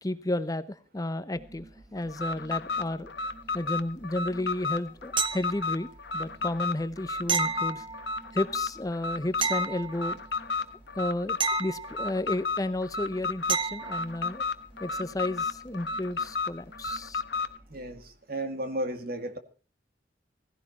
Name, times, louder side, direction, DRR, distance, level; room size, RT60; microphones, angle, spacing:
voice 1, 0.0-1.7 1.9-3.1 3.5-5.9 6.1-7.8 8.3-10.2 11.0-14.4 14.8-17.2, left 1 dB, 20° left, 13 dB, 0.8 m, -32 dB
sound 1, 1.3-18.1, right 1 dB, 10° right, 1.8 m, -53 dB
Alarm, 2.1-17.6, left 4 dB, 70° left, 1.1 m, -33 dB
sound 2, 5.2-5.9 7.3-8.4 9.4-10.4 11.4-12.4 13.5-14.1 16.9-17.0, right 6 dB, 30° right, 0.8 m, -31 dB
voice 2, 17.7-19.4, right 1 dB, 55° right, 9 dB, 2.2 m, -34 dB
16.5 x 16.5 x 4.2 m, 0.36 s
head